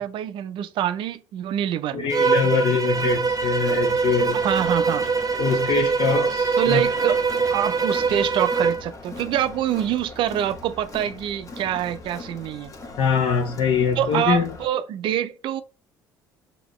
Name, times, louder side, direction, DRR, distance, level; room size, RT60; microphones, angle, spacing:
voice 1, 0.0-2.1 2.4-2.6 4.3-5.1 6.6-7.2 7.5-12.7 14.0-15.6, right 11 dB, 60° right, 0.4 m, -25 dB
voice 2, 1.9-4.4 5.4-6.8 13.0-14.5, left 6 dB, 65° left, 1.1 m, -23 dB
Bowed string instrument, 2.1-8.8, right 5 dB, 40° right, 0.7 m, -23 dB
Crowd, 2.9-14.6, left 3 dB, 35° left, 1.0 m, -40 dB
5.2 x 2.8 x 3.1 m
hypercardioid pair, 60°, 10 cm